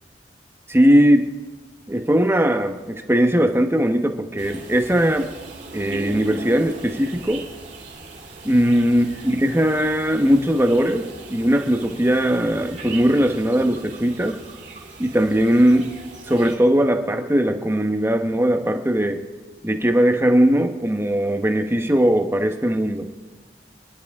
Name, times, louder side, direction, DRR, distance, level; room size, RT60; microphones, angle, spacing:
voice 1, 0.7-1.3 1.9-5.3 5.7-7.4 8.4-14.4 15.0-15.9 16.3-19.2 19.6-23.1, equal, 15° right, 6 dB, 1.1 m, -19 dB
sound 1, 4.4-16.6, right 2 dB, 45° right, 3.3 m, -38 dB
27.5 x 11.5 x 3.6 m, 1.3 s
head